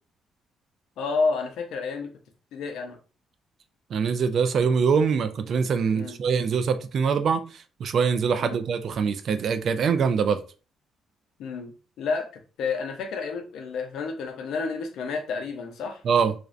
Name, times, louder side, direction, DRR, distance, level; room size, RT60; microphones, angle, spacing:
voice 1, 1.0-2.1 2.5-3.0 5.9-6.2 8.4-8.6 11.4-12.3 12.6-16.0, left 4 dB, 80° left, 0.5 m, -30 dB
voice 2, 3.9-10.4 16.0-16.3, right 6 dB, 60° right, 0.3 m, -24 dB
2.4 x 2.1 x 2.5 m
cardioid pair, 90°, 0 cm